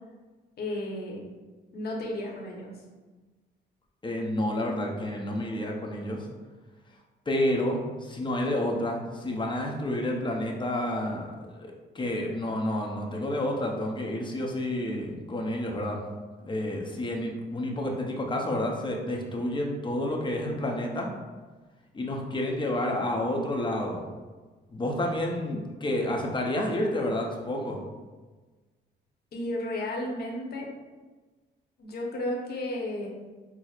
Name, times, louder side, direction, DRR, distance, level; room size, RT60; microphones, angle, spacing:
voice 1, 0.6-1.2 1.7-2.7 29.3-30.7 31.8-33.1, left 1 dB, 55° left, -1 dB, 0.9 m, -33 dB
voice 2, 4.0-6.3 7.3-16.1 16.4-21.1 21.9-24.0 24.7-27.8, left 1 dB, 25° left, 0 dB, 0.6 m, -30 dB
5.7 x 2.0 x 2.4 m, 1.3 s
cardioid pair, 90°, 20 cm